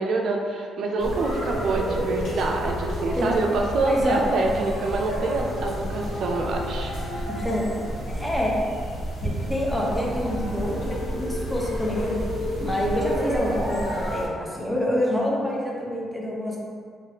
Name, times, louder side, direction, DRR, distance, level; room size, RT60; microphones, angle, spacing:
voice 1, 0.0-7.3, right 3 dB, 65° right, 1 dB, 0.4 m, -26 dB
sound 1, 1.0-14.3, equal, 90° left, 1.4 m, -30 dB
voice 2, 3.8-4.2 7.3-7.6 8.1-8.5 9.2-12.1 12.6-16.6, left 1 dB, ahead, -4 dB, 0.6 m, -27 dB
3.2 x 2.4 x 2.8 m, 2.1 s
cardioid pair, 90°, 0 cm